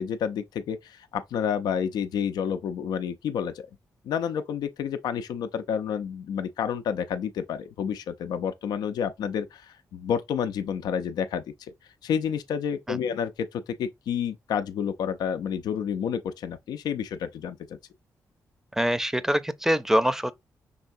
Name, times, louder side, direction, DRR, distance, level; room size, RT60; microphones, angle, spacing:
voice 1, 0.0-3.7 4.0-11.7 12.0-17.6, left 7 dB, 85° left, 0.5 m, -29 dB
voice 2, 18.8-20.3, equal, 5° right, 0.6 m, -24 dB
5.5 x 3.4 x 2.6 m
cardioid pair, 60°, 7 cm